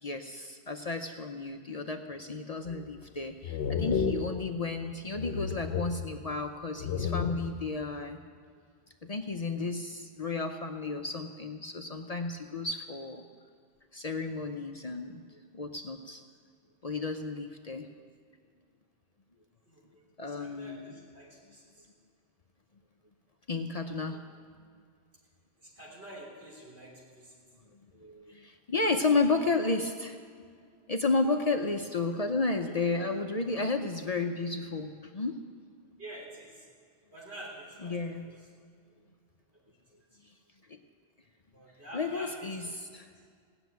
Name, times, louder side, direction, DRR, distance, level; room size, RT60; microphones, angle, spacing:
voice 1, 0.0-8.2 9.1-13.2 13.9-16.2 16.8-17.9 20.2-20.9 23.5-24.2 27.9-30.2 30.9-35.5 37.8-38.4 40.7-40.8 41.9-43.1, left 3 dB, 40° left, 5 dB, 0.7 m, -32 dB
sound 1, 2.7-3.1 3.4-4.9 5.2-6.5 6.8-7.8, left 6 dB, 75° left, 1.0 m, -33 dB
voice 2, 19.7-21.9 25.6-27.4 32.7-33.1 36.0-36.6 37.1-38.1 41.5-42.3, right 1 dB, 75° right, -4 dB, 4.1 m, -48 dB
17.5 x 7.0 x 9.3 m, 2.1 s
omnidirectional pair, 1.1 m